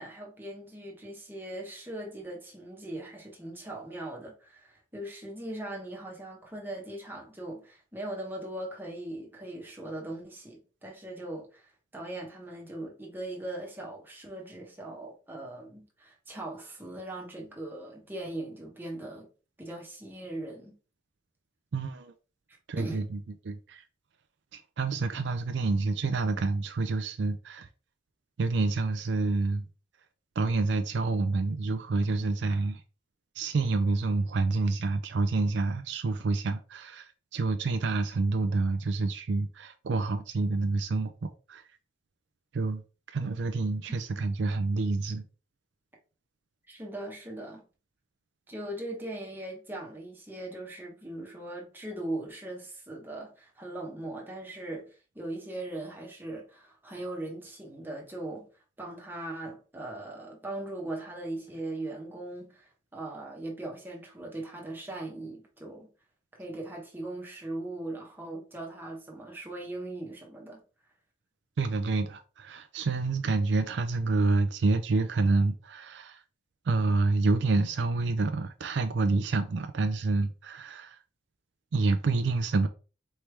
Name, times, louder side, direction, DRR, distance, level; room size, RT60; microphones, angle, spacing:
voice 1, 0.0-19.3 19.6-20.8 22.8-23.0 46.7-47.6 48.5-58.5 58.8-65.9 66.4-70.6, right 1 dB, 10° right, 1.1 m, -39 dB
voice 2, 21.7-22.1 22.7-23.8 24.5-27.7 28.4-29.7 30.4-32.8 33.4-41.6 42.5-42.8 43.1-45.2 71.6-76.2 76.7-81.0 81.7-82.7, right 3 dB, 65° right, 0.4 m, -28 dB
4.5 x 3.2 x 3.3 m
head